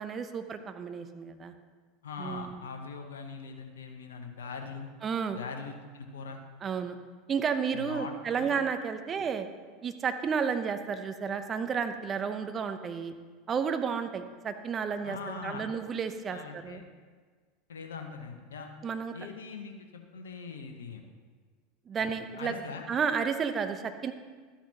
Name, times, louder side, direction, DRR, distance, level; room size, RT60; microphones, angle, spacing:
voice 1, 0.0-1.5 2.2-2.6 5.0-5.4 6.6-7.0 7.3-9.5 9.8-13.1 13.5-16.8 18.8-19.1 21.9-22.5 22.9-24.1, right 6 dB, 30° right, 8 dB, 0.8 m, -32 dB
voice 2, 2.0-4.9 5.3-6.4 7.7-8.5 15.0-15.7 16.3-16.8 17.7-18.7 19.1-21.0 22.0-22.9, left 5 dB, 75° left, 4 dB, 1.0 m, -42 dB
12.5 x 10.0 x 2.9 m, 1.5 s
figure-of-eight pair, 80°, 0 cm